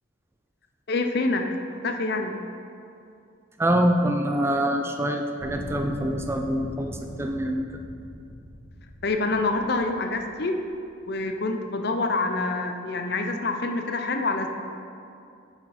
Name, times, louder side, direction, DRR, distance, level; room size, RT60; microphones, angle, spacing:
voice 1, 0.9-1.5 1.8-2.3 9.0-10.6 11.1-14.5, left 3 dB, 50° left, 5 dB, 0.6 m, -26 dB
voice 2, 3.6-7.7, right 1 dB, 10° right, 4 dB, 0.3 m, -25 dB
sound 1, 5.4-10.7 11.4-11.5, equal, 70° left, 1.3 m, -40 dB
10.5 x 5.9 x 4.2 m, 2.6 s
head